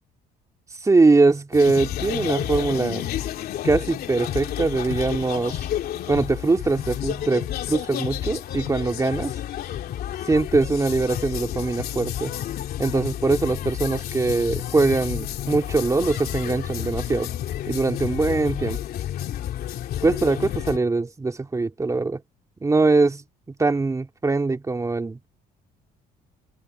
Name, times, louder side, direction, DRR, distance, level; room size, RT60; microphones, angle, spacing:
voice 1, 0.8-3.1 3.6-5.6 6.1-9.3 10.3-12.3 12.8-17.3 17.7-18.8 20.0-22.2 22.6-23.2 23.6-25.3, right 3 dB, 20° right, 2.6 m, -22 dB
sound 1, 1.5-20.8, left 11 dB, 65° left, 3.0 m, -30 dB
cardioid pair, 110°, 17 cm